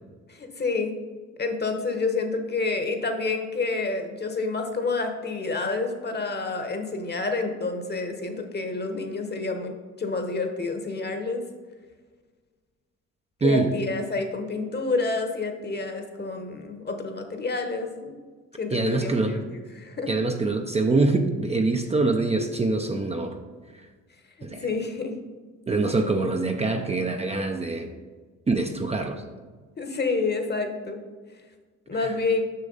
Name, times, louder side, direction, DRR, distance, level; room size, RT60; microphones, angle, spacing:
voice 1, 0.3-0.9 1.4-9.7 10.0-11.4 13.4-18.2 18.6-20.1 24.5-25.1 29.8-31.0 31.9-32.4, left 3 dB, 35° left, 5 dB, 1.1 m, -28 dB
voice 2, 13.4-13.7 18.7-19.4 20.1-23.4 24.4-24.7 25.7-27.9 28.5-29.2 31.9-32.1, right 3 dB, 20° right, 4 dB, 0.6 m, -24 dB
6.6 x 6.2 x 4.0 m, 1.5 s
cardioid pair, 90°, 30 cm